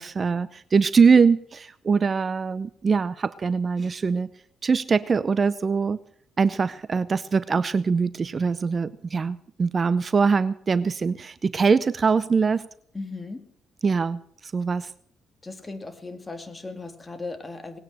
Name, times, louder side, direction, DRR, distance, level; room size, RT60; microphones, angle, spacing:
voice 1, 0.0-4.3 4.6-6.0 6.4-12.7 13.8-14.9, right 5 dB, 35° right, 17 dB, 0.6 m, -22 dB
voice 2, 12.9-13.4 15.4-17.8, left 3 dB, 20° left, 8 dB, 2.6 m, -37 dB
19.5 x 9.1 x 7.6 m, 0.64 s
cardioid pair, 90°, 0 cm